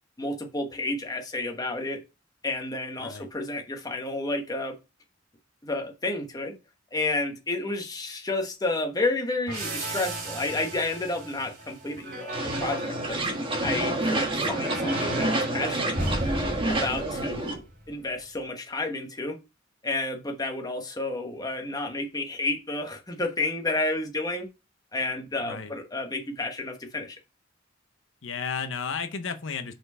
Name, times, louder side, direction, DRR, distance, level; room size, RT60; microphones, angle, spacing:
voice 1, 0.2-2.0 2.4-4.7 5.6-6.5 6.9-13.3 13.6-16.1 16.7-19.4 19.8-24.5 24.9-27.2, left 2 dB, 20° left, 1.2 m, -31 dB
sound 1, 9.5-17.9, right 2 dB, 50° right, 3.1 m, -36 dB
sound 2, 12.3-17.5, right 1 dB, 30° right, 1.4 m, -28 dB
voice 2, 28.2-29.7, left 6 dB, 80° left, 0.7 m, -33 dB
5.6 x 4.4 x 5.4 m
head